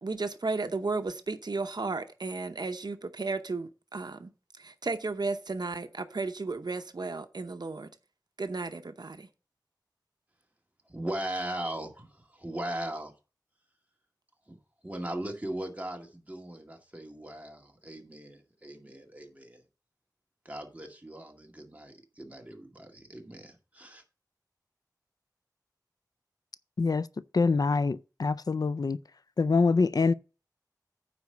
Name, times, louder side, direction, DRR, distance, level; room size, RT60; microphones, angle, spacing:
voice 1, 0.0-7.9 8.4-9.3, right 3 dB, 75° right, 0.7 m, -34 dB
voice 2, 10.9-13.1 14.5-14.6 14.8-19.6 20.5-24.0, right 1 dB, 20° right, 2.0 m, -39 dB
voice 3, 27.3-29.0 29.4-30.1, left 4 dB, 65° left, 0.4 m, -25 dB
9.5 x 4.1 x 6.7 m
wide cardioid pair, 65°, 7 cm